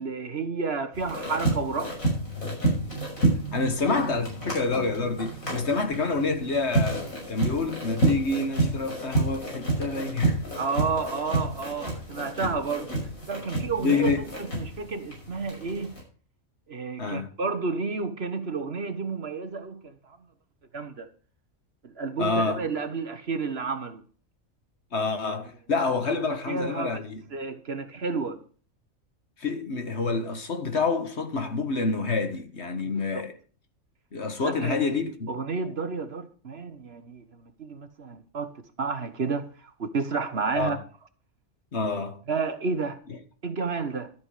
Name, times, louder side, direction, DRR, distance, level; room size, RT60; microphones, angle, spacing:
voice 1, 0.0-2.0 10.6-13.0 13.3-14.1 14.4-16.0 16.7-20.2 20.7-21.1 21.8-24.0 26.3-27.0 27.3-28.4 32.8-33.2 34.4-34.8 35.3-38.5 38.8-40.8 42.3-43.0 43.4-44.1, right 4 dB, 50° right, 1.4 m, -31 dB
sound 1, 0.9-16.0, right 2 dB, 90° left, 6.3 m, -29 dB
voice 2, 3.5-10.4 13.8-14.2 17.0-17.3 22.2-22.6 24.9-27.2 29.4-33.3 34.1-35.3 40.5-40.8 41.7-42.2, left 3 dB, 55° left, 1.7 m, -28 dB
13.0 x 8.6 x 5.0 m
omnidirectional pair, 1.4 m